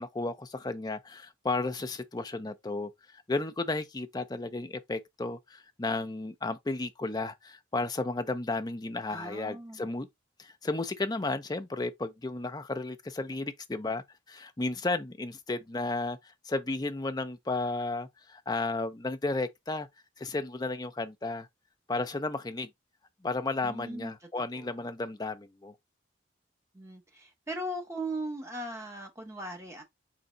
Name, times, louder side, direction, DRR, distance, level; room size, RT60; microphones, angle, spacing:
voice 1, 0.0-2.9 3.3-10.1 10.4-16.2 16.5-19.9 20.2-21.5 21.9-22.7 23.2-25.7, left 2 dB, 20° left, 0.5 m, -33 dB
voice 2, 9.1-9.9 23.6-24.8 26.7-29.8, right 1 dB, 15° right, 1.1 m, -39 dB
3.9 x 3.3 x 3.8 m
head